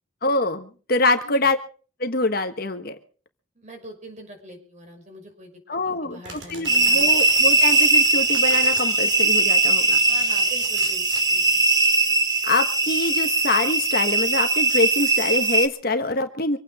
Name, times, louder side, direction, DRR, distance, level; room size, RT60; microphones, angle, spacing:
voice 1, 0.2-1.6 2.0-3.0 5.7-10.0 12.4-16.6, left 2 dB, 50° left, 8 dB, 1.3 m, -25 dB
voice 2, 1.1-1.5 3.5-7.1 10.1-11.6, equal, 35° right, 2 dB, 5.9 m, -43 dB
Domestic sounds home sounds, 6.2-8.9 9.6-11.3, right 3 dB, 60° right, 5.3 m, -41 dB
sound 1, 6.7-15.7, right 3 dB, 20° right, 1.2 m, -20 dB
25.5 x 9.2 x 5.0 m, 0.40 s
head